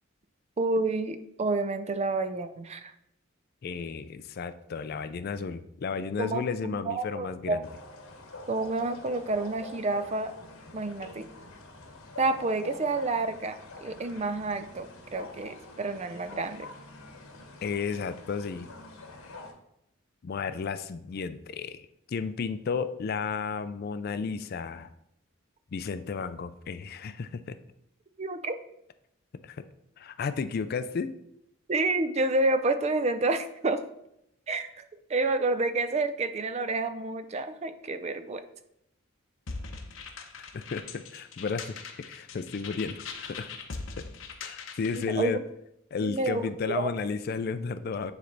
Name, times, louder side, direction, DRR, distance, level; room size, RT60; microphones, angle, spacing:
voice 1, 0.6-2.9 6.2-7.7 8.5-10.3 10.7-11.3 12.2-16.7 28.2-28.5 31.7-33.8 34.5-34.8 35.1-38.4 44.9-45.4 46.0-46.9, right 2 dB, 30° right, 10 dB, 0.4 m, -29 dB
voice 2, 3.6-7.7 17.6-18.7 20.2-21.8 22.1-24.9 25.7-27.6 29.4-29.6 30.0-31.1 40.2-40.3 40.5-43.5 44.0-44.1 44.4-45.4 45.9-48.1, left 5 dB, 45° left, 12 dB, 0.3 m, -33 dB
sound 1, 7.6-19.5, left 2 dB, 85° left, 1.1 m, -46 dB
sound 2, 39.5-45.1, left 4 dB, 70° left, 0.8 m, -41 dB
9.6 x 3.3 x 3.9 m, 0.79 s
head